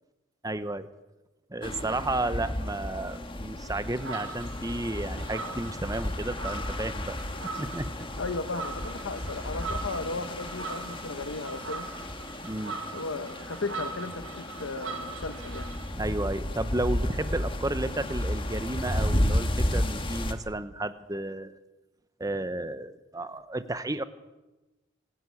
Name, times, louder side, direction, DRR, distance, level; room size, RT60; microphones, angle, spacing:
voice 1, 0.4-0.9 1.5-7.2 7.4-7.9 12.4-12.8 16.0-21.6 22.2-24.0, right 2 dB, 20° right, 12 dB, 0.9 m, -32 dB
sound 1, 1.6-20.3, left 1 dB, 25° left, 1.7 m, -33 dB
sound 2, 4.0-15.9, right 4 dB, 85° right, 2.8 m, -41 dB
voice 2, 8.2-11.9 12.9-15.7, left 3 dB, 80° left, 10 dB, 1.0 m, -35 dB
25.0 x 11.0 x 9.7 m, 1.1 s
head